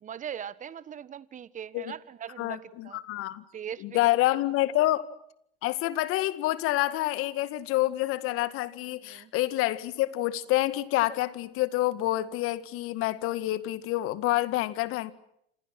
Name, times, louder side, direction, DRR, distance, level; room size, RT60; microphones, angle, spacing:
voice 1, 0.0-3.0 3.5-4.0 9.0-9.3, right 9 dB, 25° right, 18 dB, 1.4 m, -40 dB
voice 2, 2.4-3.4 3.8-5.0 5.6-15.1, left 16 dB, 45° left, 14 dB, 2.1 m, -27 dB
29.5 x 27.0 x 6.2 m, 0.73 s
hypercardioid pair, 100°, 30 cm